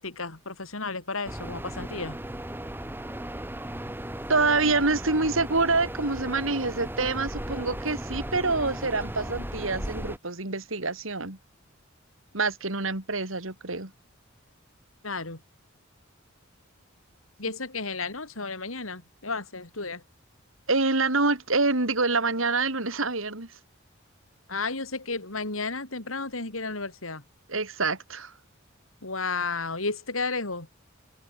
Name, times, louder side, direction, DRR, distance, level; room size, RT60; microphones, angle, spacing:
voice 1, 0.0-2.2 15.0-15.4 17.4-20.0 24.5-27.2 29.0-30.7, left 3 dB, 85° left, 4.6 m, -33 dB
sound 1, 1.3-10.2, right 1 dB, 10° right, 2.3 m, -36 dB
voice 2, 4.3-11.4 12.3-13.9 20.7-23.5 27.5-28.3, right 3 dB, 75° right, 3.6 m, -26 dB
open air
head